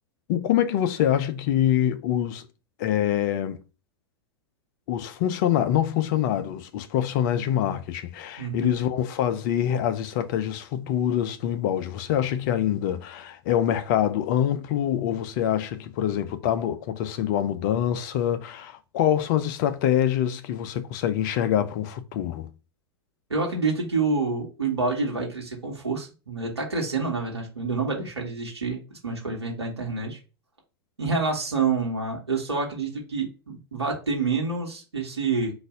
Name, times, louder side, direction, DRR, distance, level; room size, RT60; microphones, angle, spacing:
voice 1, 0.3-2.5 2.8-3.6 4.9-22.5, left 10 dB, 45° left, 0.6 m, -25 dB
voice 2, 8.4-8.7 23.3-30.2 31.0-35.5, right 4 dB, 80° right, 1.3 m, -28 dB
4.0 x 2.6 x 4.7 m
figure-of-eight pair, 95°, 14 cm